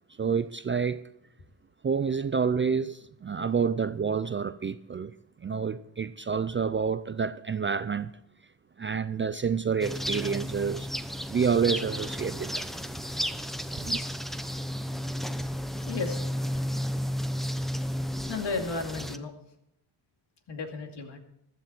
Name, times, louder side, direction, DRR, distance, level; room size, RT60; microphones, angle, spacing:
voice 1, 0.2-1.0 1.8-5.1 5.4-8.1 8.8-10.9 11.3-12.7 13.8-14.0, right 6 dB, 25° right, 0.4 m, -28 dB
sound 1, 9.8-19.2, equal, ahead, 0.8 m, -33 dB
voice 2, 15.8-16.5 18.3-19.3 20.5-21.2, left 4 dB, 60° left, 2.4 m, -34 dB
15.0 x 12.0 x 4.4 m
cardioid pair, 100°, 46 cm